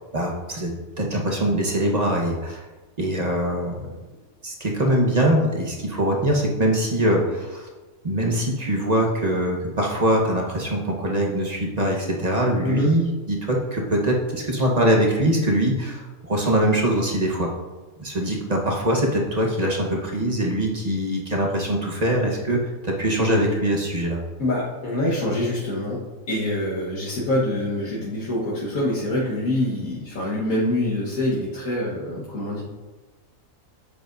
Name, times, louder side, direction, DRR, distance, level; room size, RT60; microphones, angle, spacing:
voice 1, 0.1-2.6 3.0-3.9 4.4-7.7 8.0-17.5 18.0-24.2, right 1 dB, 30° right, -1 dB, 1.1 m, -23 dB
voice 2, 24.4-32.6, left 1 dB, 85° left, -7 dB, 1.8 m, -25 dB
9.7 x 7.8 x 2.6 m, 1.2 s
omnidirectional pair, 1.4 m